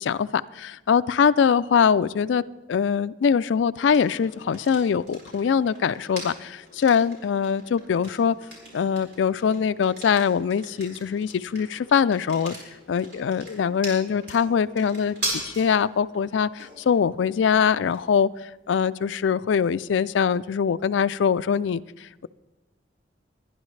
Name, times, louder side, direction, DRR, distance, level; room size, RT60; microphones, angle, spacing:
voice 1, 0.0-2.4 2.7-8.4 8.7-12.6 12.9-18.3 18.7-22.3, left 7 dB, 80° left, 15 dB, 0.4 m, -23 dB
sound 1, 3.9-21.6, right 1 dB, 60° right, 4.9 m, -41 dB
22.0 x 10.5 x 3.2 m, 1.1 s
head